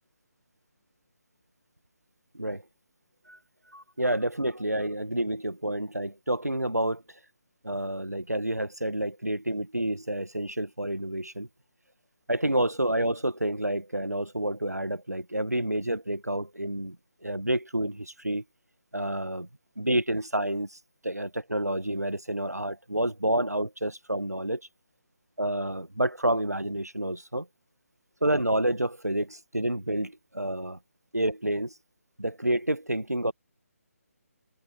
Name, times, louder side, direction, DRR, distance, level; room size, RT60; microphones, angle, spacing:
voice 1, 3.7-7.0 7.6-11.5 12.3-17.0 17.2-18.4 18.9-19.5 19.8-20.8 21.0-24.6 25.4-27.5 28.2-30.8 31.1-31.7 32.2-33.3, right 1 dB, 90° right, 1.7 m, -29 dB
figure-of-eight pair, 145°, 8 cm